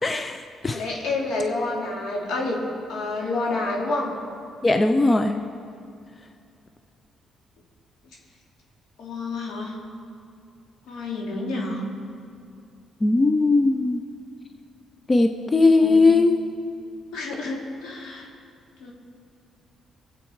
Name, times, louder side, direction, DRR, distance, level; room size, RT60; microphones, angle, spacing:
voice 1, 0.0-0.8 4.6-5.4 13.0-14.0 15.1-16.4, left 3 dB, 25° left, 6 dB, 0.7 m, -19 dB
voice 2, 0.6-2.6 2.9-4.1 9.0-9.7 10.9-11.8 15.3-15.5 15.8-16.1 17.1-17.6 17.8-18.3 18.8-18.9, left 3 dB, 85° left, -2 dB, 3.2 m, -29 dB
23.0 x 8.3 x 4.9 m, 2.4 s
cardioid pair, 90°, 0 cm